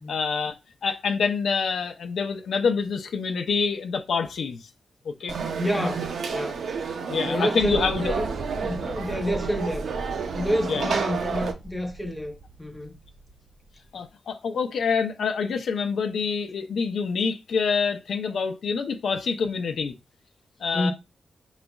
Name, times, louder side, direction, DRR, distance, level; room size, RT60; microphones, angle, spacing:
voice 1, 0.1-4.7 5.0-5.4 7.1-8.0 10.7-10.9 13.9-19.9 20.6-20.9, left 5 dB, 80° left, 0.6 m, -26 dB
Conversation / Crowd, 5.3-11.5, right 5 dB, 85° right, 0.7 m, -31 dB
voice 2, 5.6-6.8 7.2-8.3 8.6-9.8 10.3-13.0 20.7-20.9, equal, 5° left, 0.8 m, -28 dB
sound 1, 7.6-13.9, right 1 dB, 40° right, 0.6 m, -38 dB
5.1 x 4.0 x 2.3 m
wide cardioid pair, 160°, 0 cm